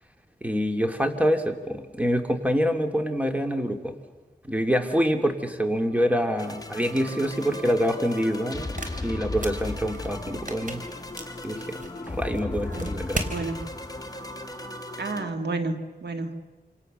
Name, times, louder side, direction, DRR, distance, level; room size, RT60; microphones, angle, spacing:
voice 1, 0.4-3.9 4.4-8.7 9.0-10.8 11.4-11.6 12.0-13.3, equal, 10° right, 5 dB, 2.8 m, -26 dB
sound 1, 6.0-15.3, left 2 dB, 20° left, 2.1 m, -36 dB
sound 2, 6.7-13.4, right 2 dB, 50° right, 3.7 m, -39 dB
voice 2, 12.7-13.0 13.3-13.7 15.0-16.6, right 3 dB, 85° right, 7 dB, 1.9 m, -31 dB
28.0 x 27.5 x 6.8 m, 1.2 s
wide cardioid pair, 65°, 17 cm